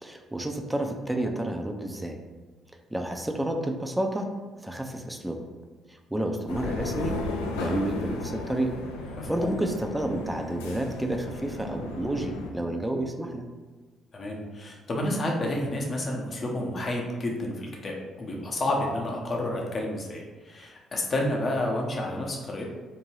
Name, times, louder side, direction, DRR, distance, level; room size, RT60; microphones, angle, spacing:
voice 1, 0.0-2.2 2.9-5.4 5.9-7.2 7.6-8.7 9.3-13.5, right 1 dB, 10° right, 3 dB, 0.4 m, -30 dB
sound 1, 6.5-12.5, left 2 dB, 85° left, 0.3 m, -35 dB
voice 2, 9.2-9.5 14.1-22.6, left 1 dB, 40° left, -1 dB, 0.7 m, -30 dB
2.6 x 2.2 x 3.1 m, 1.3 s
hypercardioid pair, 55°, 0 cm